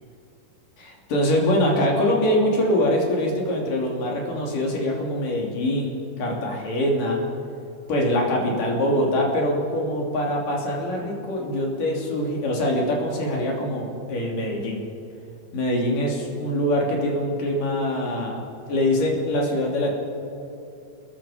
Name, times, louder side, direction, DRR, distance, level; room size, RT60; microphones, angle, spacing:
voice 1, 0.8-7.2 7.9-14.8 15.5-18.4 18.7-19.9, left 1 dB, 60° left, -1 dB, 4.6 m, -24 dB
27.5 x 21.0 x 5.1 m, 2.7 s
omnidirectional pair, 4.3 m